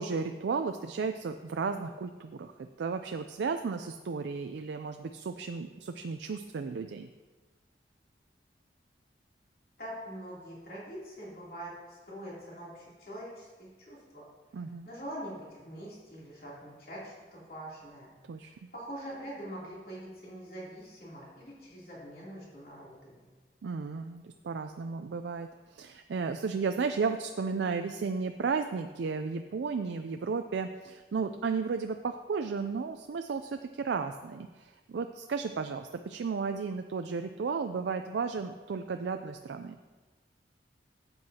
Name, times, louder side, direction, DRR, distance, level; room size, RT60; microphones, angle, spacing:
voice 1, 0.0-7.1 14.5-14.9 18.3-18.7 23.6-39.8, right 5 dB, 80° right, 7 dB, 0.4 m, -34 dB
voice 2, 9.8-14.3 14.8-18.1 18.4-23.3, equal, 55° left, -6 dB, 3.1 m, -44 dB
12.5 x 7.9 x 2.8 m, 1.3 s
head